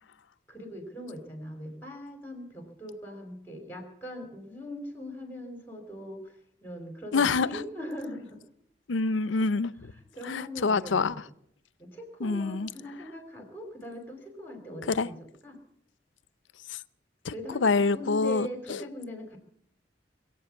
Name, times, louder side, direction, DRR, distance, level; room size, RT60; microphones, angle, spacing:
voice 1, 0.5-8.4 10.0-11.1 11.8-15.6 17.3-19.4, equal, 10° left, 5 dB, 2.9 m, -41 dB
voice 2, 7.1-7.5 8.9-9.9 10.3-11.1 12.2-12.7 14.9-15.1 16.7-16.8 17.2-18.5, left 4 dB, 85° left, 18 dB, 0.6 m, -26 dB
21.0 x 8.3 x 8.3 m, 0.70 s
head